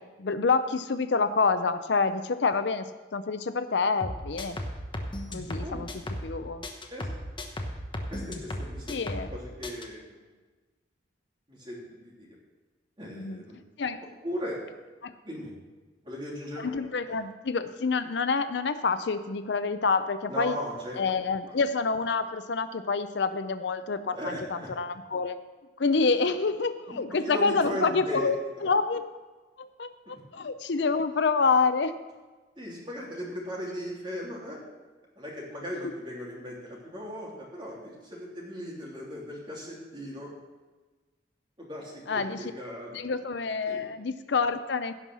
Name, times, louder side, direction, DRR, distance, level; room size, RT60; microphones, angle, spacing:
voice 1, 0.0-2.9 3.1-4.6 5.3-5.9 6.2-6.6 8.3-8.4 8.9-9.3 13.1-13.4 13.8-14.0 15.0-15.1 16.5-20.6 21.0-24.3 24.8-25.4 25.8-28.4 28.6-29.0 29.6-31.9 42.1-42.5 42.9-44.9, left 4 dB, 65° left, 11 dB, 0.6 m, -27 dB
sound 1, 4.0-6.4 6.6-9.4 9.6-9.9, left 1 dB, 25° left, 1.1 m, -35 dB
voice 2, 8.1-9.0 9.3-10.2 11.5-12.3 13.0-13.6 14.2-14.6 15.2-15.5 16.0-16.7 17.1-17.2 20.3-21.0 24.1-24.7 26.9-28.3 28.6-28.7 32.6-34.6 35.1-40.3 41.6-43.0 43.7-43.8, equal, 25° right, -4 dB, 3.0 m, -37 dB
16.5 x 5.6 x 6.2 m, 1.3 s
head